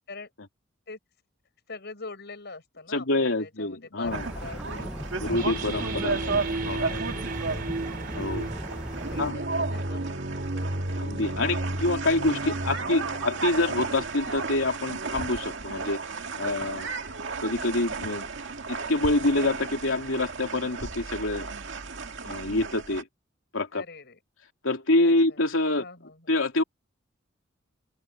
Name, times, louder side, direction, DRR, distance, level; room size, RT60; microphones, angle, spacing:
voice 1, 1.7-4.9 5.2-7.2 7.5-8.2 9.0-11.6 12.4-13.8 23.7-24.2 25.3-25.4 25.8-26.3, left 3 dB, 55° left, 6.8 m, -44 dB
voice 2, 2.9-4.3 5.2-6.2 6.7-6.9 8.1-8.5 9.2-9.4 11.0-16.0 16.4-16.9 17.4-18.3 18.7-21.5 22.2-23.1 23.5-23.8 24.6-25.8 26.3-26.6, left 2 dB, 75° left, 3.1 m, -26 dB
sound 1, 4.0-9.3, equal, 5° right, 1.1 m, -37 dB
sound 2, 4.1-23.0, right 4 dB, 65° right, 2.1 m, -34 dB
sound 3, 5.3-14.7, right 2 dB, 50° right, 2.8 m, -34 dB
open air
head